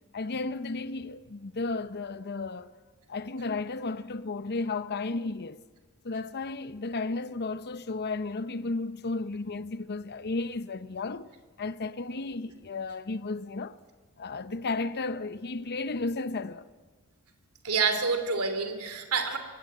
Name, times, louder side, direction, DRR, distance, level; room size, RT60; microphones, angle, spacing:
voice 1, 0.1-2.7 3.1-5.6 6.0-11.3 11.6-13.8 14.2-16.7, left 3 dB, 45° left, 0.7 m, -33 dB
voice 2, 17.6-19.4, right 4 dB, 75° right, 3.1 m, -27 dB
24.0 x 22.0 x 9.5 m
head